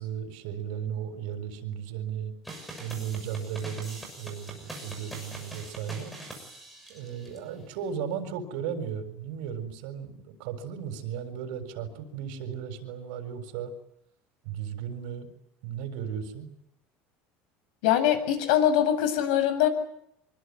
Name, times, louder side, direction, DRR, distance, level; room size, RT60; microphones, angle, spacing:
voice 1, 0.0-2.3 2.8-6.1 6.9-13.7 14.4-15.3 15.6-16.5, right 8 dB, 75° right, 7 dB, 7.1 m, -35 dB
sound 1, 2.4-7.4, right 1 dB, ahead, 6.6 m, -43 dB
voice 2, 17.8-19.7, left 10 dB, 85° left, 10 dB, 7.5 m, -23 dB
26.0 x 22.5 x 9.4 m, 0.75 s
cardioid pair, 180°, 5 cm